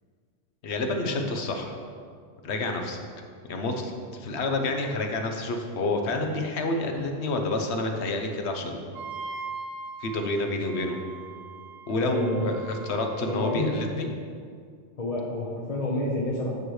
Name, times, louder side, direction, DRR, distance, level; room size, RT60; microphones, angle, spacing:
voice 1, 0.6-1.8 2.4-3.0 3.5-8.8 10.0-11.0 11.9-14.1, left 2 dB, 70° left, 4 dB, 1.1 m, -28 dB
Wind instrument woodwind instrument, 8.9-13.9, right 4 dB, 65° right, 0.8 m, -41 dB
voice 2, 12.0-12.5 13.3-13.7 15.0-16.6, left 1 dB, 35° left, -4 dB, 0.9 m, -29 dB
9.1 x 3.2 x 6.2 m, 2.1 s
omnidirectional pair, 1.2 m